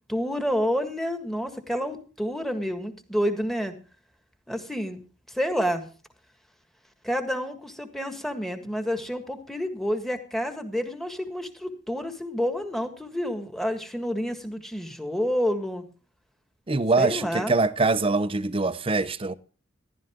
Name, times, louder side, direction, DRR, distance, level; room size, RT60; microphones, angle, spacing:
voice 1, 0.1-3.7 4.5-5.0 5.3-5.8 7.0-15.8 17.0-17.5, equal, ahead, 1.7 m, -29 dB
voice 2, 16.7-19.3, right 3 dB, 30° right, 0.7 m, -23 dB
14.5 x 12.0 x 3.6 m
head